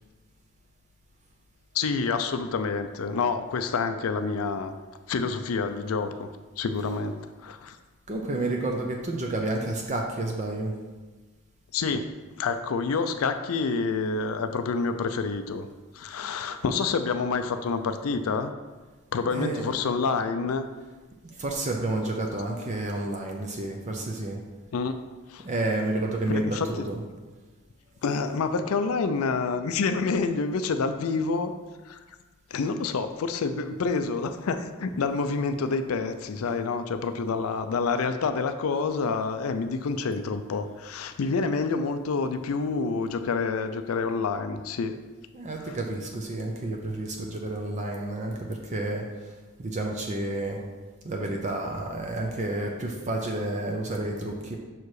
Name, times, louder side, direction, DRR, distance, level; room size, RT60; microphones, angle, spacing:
voice 1, 1.7-4.7 5.1-6.3 6.6-7.1 7.4-7.8 11.7-15.7 15.9-18.5 19.1-20.7 24.7-25.0 25.3-25.5 26.3-26.9 28.0-31.5 31.8-32.0 32.5-44.9 45.6-45.8, left 4 dB, 75° left, 8 dB, 0.4 m, -28 dB
voice 2, 8.1-10.7 19.3-19.7 21.2-24.4 25.4-27.0 45.3-50.6 51.0-54.6, right 2 dB, 35° right, 1 dB, 0.6 m, -30 dB
5.8 x 4.7 x 4.8 m, 1.3 s
head